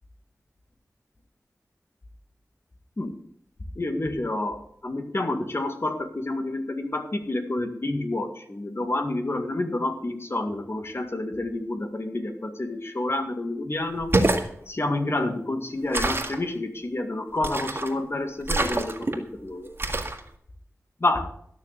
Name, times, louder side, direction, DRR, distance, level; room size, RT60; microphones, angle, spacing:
voice 1, 3.8-14.1 14.7-19.7 21.0-21.3, left 2 dB, 50° left, 6 dB, 2.0 m, -29 dB
sound 1, 14.0-14.5 15.9-16.4 17.4-17.9 18.4-19.2 19.8-20.2, right 2 dB, 45° right, 2.1 m, -25 dB
12.5 x 6.6 x 8.3 m, 0.66 s
wide cardioid pair, 65°, 6 cm